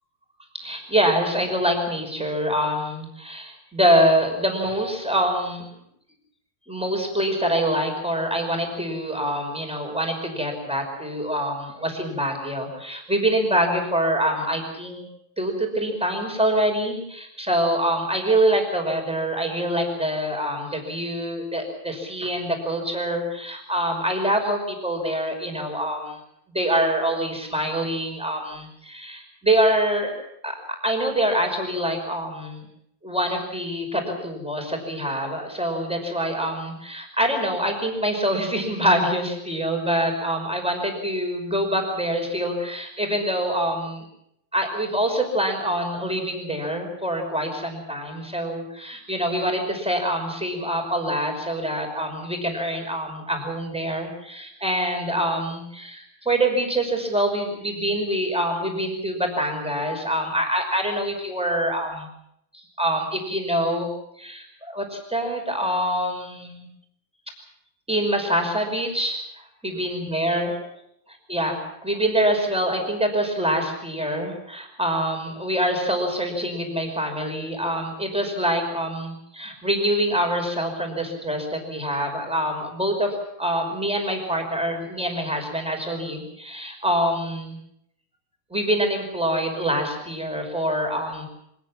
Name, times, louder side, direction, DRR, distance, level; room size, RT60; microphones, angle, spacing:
voice 1, 0.5-5.7 6.7-15.0 15.4-26.2 26.5-30.1 30.4-30.5 30.8-32.7 33.0-44.0 44.5-62.1 62.5-63.9 64.2-66.7 67.9-70.5 71.3-87.6 88.5-91.3, right 1 dB, ahead, 3 dB, 5.1 m, -25 dB
25.5 x 19.0 x 7.4 m, 0.75 s
omnidirectional pair, 4.6 m